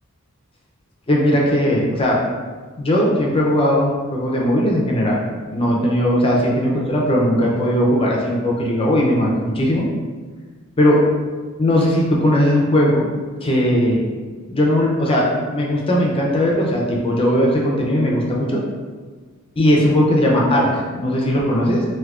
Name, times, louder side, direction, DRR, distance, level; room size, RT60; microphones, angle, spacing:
voice 1, 1.1-2.2 2.8-5.2 5.5-9.8 10.8-11.0 11.6-13.0 13.4-14.0 14.5-15.2 15.5-18.6 19.6-21.9, equal, 25° left, -3 dB, 0.5 m, -18 dB
3.4 x 2.6 x 2.4 m, 1.4 s
head